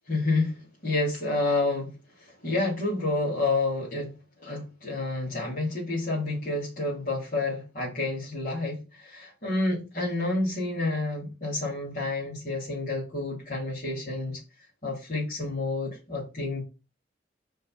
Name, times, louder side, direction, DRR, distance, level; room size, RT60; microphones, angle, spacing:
voice 1, 0.1-1.9 2.2-4.1 4.4-14.4 14.8-16.6, left 2 dB, 45° left, 3.1 m, -29 dB
5.2 x 4.8 x 5.9 m
head